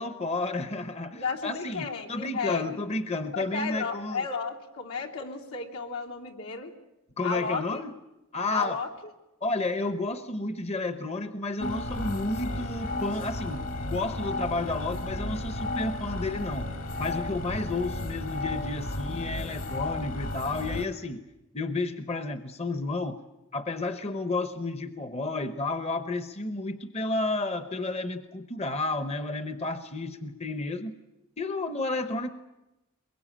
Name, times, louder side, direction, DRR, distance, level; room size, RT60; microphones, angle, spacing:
voice 1, 0.0-4.2 7.2-7.9 8.3-8.8 9.4-16.7 17.0-21.2 21.5-23.2 23.5-31.0 31.4-32.3, left 2 dB, 30° left, 10 dB, 0.9 m, -31 dB
voice 2, 1.1-2.8 3.3-6.7 7.2-7.8 8.5-8.9, left 5 dB, 85° left, -1 dB, 3.3 m, -33 dB
sound 1, 11.6-20.9, left 2 dB, 65° left, 3.1 m, -33 dB
23.0 x 22.0 x 8.8 m, 0.97 s
head